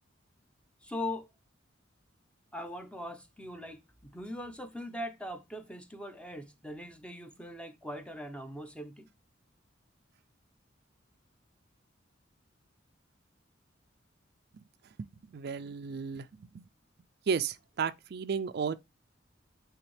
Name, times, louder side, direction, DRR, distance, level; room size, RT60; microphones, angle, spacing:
voice 1, 0.8-1.3 2.5-9.1, left 1 dB, 5° left, 0.7 m, -41 dB
voice 2, 15.0-16.6 17.3-18.7, right 6 dB, 55° right, 0.4 m, -34 dB
9.0 x 3.5 x 3.2 m
head